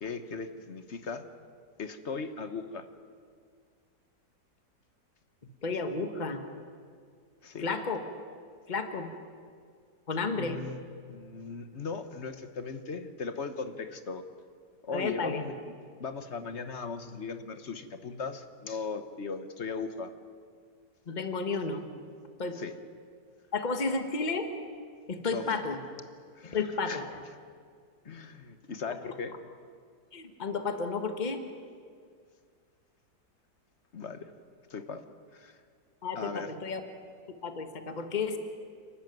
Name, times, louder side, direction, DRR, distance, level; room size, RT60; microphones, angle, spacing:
voice 1, 0.0-1.2 1.8-2.8 7.4-7.7 10.3-10.8 11.1-14.2 14.8-15.5 16.0-20.1 22.5-22.7 25.3-25.6 26.3-26.6 26.8-27.0 28.0-29.3 33.9-34.3 34.7-35.0 35.3-35.6 36.1-36.5, left 4 dB, 45° left, 10 dB, 1.3 m, -38 dB
voice 2, 5.6-6.4 7.6-8.0 8.7-9.1 10.1-10.6 14.9-15.4 21.1-21.8 22.4-22.6 23.5-24.5 25.1-25.8 26.4-27.1 30.1-31.4 36.0-36.8 37.3-38.4, left 4 dB, 30° left, 7 dB, 1.5 m, -32 dB
29.5 x 13.0 x 9.4 m, 2.1 s
omnidirectional pair, 1.8 m